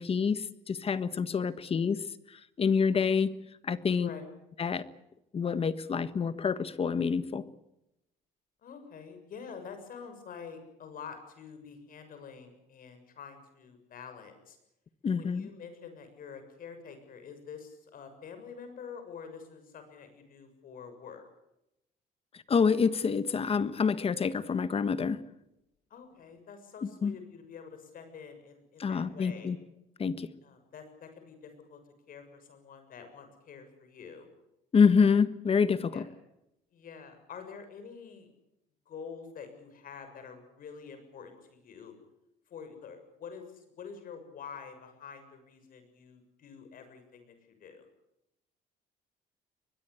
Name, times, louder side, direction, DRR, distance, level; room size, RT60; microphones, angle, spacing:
voice 1, 0.0-2.0 2.6-3.3 3.6-4.1 4.6-4.9 5.3-7.4 15.0-15.5 22.5-25.2 26.8-27.1 28.8-29.6 30.0-30.3 34.7-36.0, left 6 dB, 35° left, 13 dB, 1.5 m, -27 dB
voice 2, 4.0-4.3 8.6-14.6 15.1-21.2 25.9-29.5 30.4-31.8 32.1-34.3 35.9-36.1 36.7-38.3 38.9-41.9 42.5-47.9, left 6 dB, 55° left, 8 dB, 6.9 m, -47 dB
22.5 x 21.5 x 8.3 m, 0.87 s
cardioid pair, 110°, 17 cm